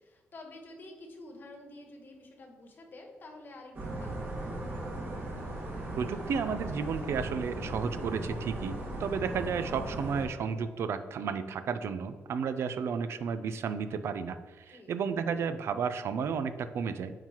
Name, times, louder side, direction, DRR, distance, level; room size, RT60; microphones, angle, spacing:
voice 1, 0.0-4.5 14.7-14.9, left 2 dB, 50° left, 3 dB, 1.2 m, -49 dB
sound 1, 3.7-10.3, right 1 dB, 50° right, 1.9 m, -37 dB
voice 2, 6.0-17.1, right 6 dB, 75° right, 11 dB, 0.4 m, -33 dB
8.9 x 3.9 x 3.0 m, 1.4 s
cardioid pair, 110°, 5 cm